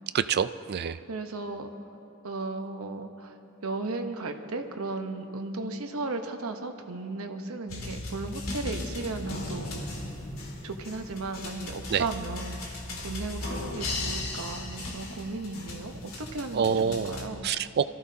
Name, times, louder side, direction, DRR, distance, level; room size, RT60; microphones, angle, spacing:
voice 1, 0.1-1.0 11.9-12.1 16.5-17.2 17.4-17.9, right 7 dB, 50° right, 14 dB, 0.3 m, -26 dB
voice 2, 1.1-1.7 2.2-3.4 3.6-9.9 10.6-17.5, right 3 dB, 80° right, 6 dB, 1.0 m, -35 dB
sound 1, 7.7-17.3, left 2 dB, 75° left, 2.1 m, -37 dB
25.0 x 14.0 x 2.8 m, 2.7 s
head